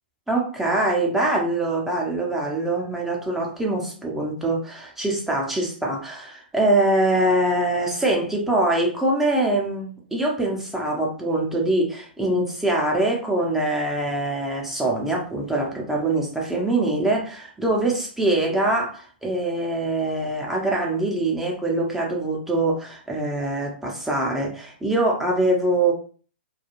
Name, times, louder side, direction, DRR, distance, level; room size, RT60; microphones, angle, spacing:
voice 1, 0.3-25.9, right 2 dB, 5° right, -2 dB, 0.7 m, -23 dB
2.3 x 2.2 x 3.0 m, 0.42 s
hypercardioid pair, 120°, 6 cm